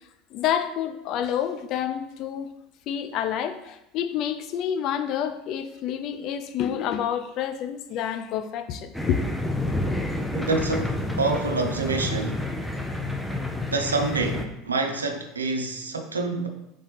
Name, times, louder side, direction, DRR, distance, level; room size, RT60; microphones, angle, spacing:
voice 1, 0.3-2.5 2.9-9.2, left 9 dB, 55° left, 9 dB, 0.4 m, -28 dB
sound 1, 8.9-14.5, left 1 dB, 5° left, 0.6 m, -29 dB
voice 2, 10.3-12.4 13.7-16.5, right 3 dB, 90° right, 5 dB, 0.5 m, -27 dB
4.0 x 3.6 x 3.4 m, 0.85 s
hypercardioid pair, 75°, 0 cm